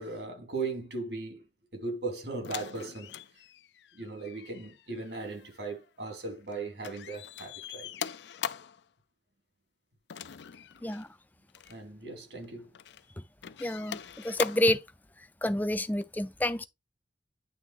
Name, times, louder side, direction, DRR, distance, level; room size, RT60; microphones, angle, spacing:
voice 1, 0.0-1.4 1.7-3.1 3.9-7.9 11.7-12.7, right 3 dB, 75° right, 2.6 m, -38 dB
sound 1, 2.4-6.5 6.8-8.8 10.1-11.1 11.5-11.8 12.4-13.0 13.4-14.8 16.0-16.1, left 8 dB, 75° left, 0.4 m, -42 dB
voice 2, 13.6-14.8 15.4-16.7, left 1 dB, 10° left, 0.4 m, -29 dB
9.3 x 3.5 x 4.6 m
head